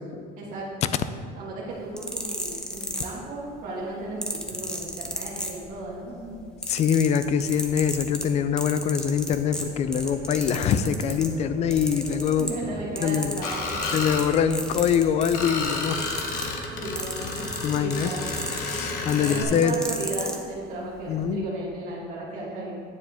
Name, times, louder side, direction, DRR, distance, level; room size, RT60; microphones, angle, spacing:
voice 1, 1.3-6.5 12.4-13.8 16.7-17.5 17.8-18.3 19.2-22.8, right 2 dB, 50° right, -5 dB, 1.7 m, -35 dB
sound 1, 1.8-3.5 4.2-6.0 6.3-11.3 11.7-12.7 13.0-20.4 21.1-21.3, equal, 5° left, 0.7 m, -33 dB
voice 2, 6.7-12.5 13.0-13.4 13.9-16.0 17.6-18.1 18.6-19.8 21.1-21.5, left 8 dB, 40° left, 11 dB, 0.4 m, -24 dB
sound 2, 9.6-15.6, right 1 dB, 25° right, 1.2 m, -42 dB
Screech, 13.4-14.2 15.3-19.4, left 3 dB, 55° left, 1.1 m, -31 dB
9.4 x 7.3 x 3.5 m, 2.2 s
cardioid pair, 150°, 17 cm